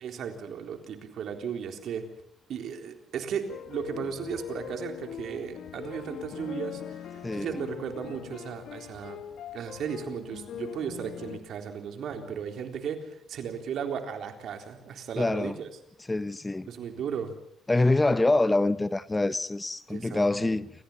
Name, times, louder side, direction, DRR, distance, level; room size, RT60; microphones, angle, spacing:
voice 1, 0.0-2.0 2.5-9.2 9.5-15.7 16.7-17.3 19.9-20.5, right 7 dB, 70° right, 3.8 m, -35 dB
sound 1, 3.5-11.4, left 9 dB, 70° left, 2.2 m, -41 dB
voice 2, 7.2-7.6 15.2-15.6 16.1-16.7 17.7-20.7, left 2 dB, 15° left, 0.8 m, -25 dB
28.0 x 15.5 x 7.3 m
cardioid pair, 90°, 0 cm